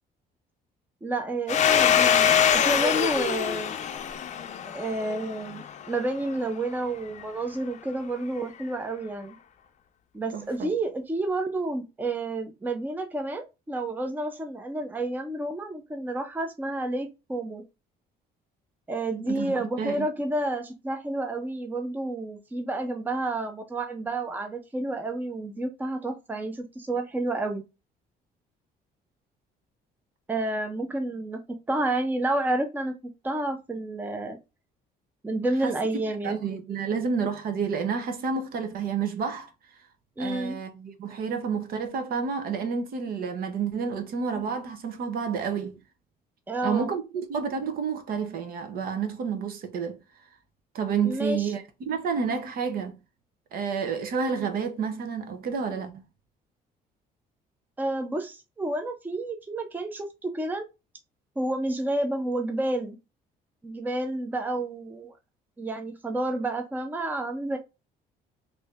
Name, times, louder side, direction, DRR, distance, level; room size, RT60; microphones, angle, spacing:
voice 1, 1.0-3.8 4.7-9.4 10.1-17.6 18.9-27.6 30.3-34.4 35.2-36.4 40.2-40.6 46.5-46.9 51.0-51.5 57.8-60.7 61.4-63.0 63.6-65.1 65.6-67.6, right 2 dB, 10° right, 0.5 m, -30 dB
Domestic sounds home sounds, 1.5-5.9, left 8 dB, 45° left, 0.5 m, -23 dB
voice 2, 10.3-10.7 19.3-20.1 35.6-35.7 36.2-39.5 40.2-45.8 46.6-50.0 50.7-53.0 53.5-56.0, right 6 dB, 60° right, 0.8 m, -30 dB
3.3 x 2.7 x 3.4 m
cardioid pair, 110°, 17 cm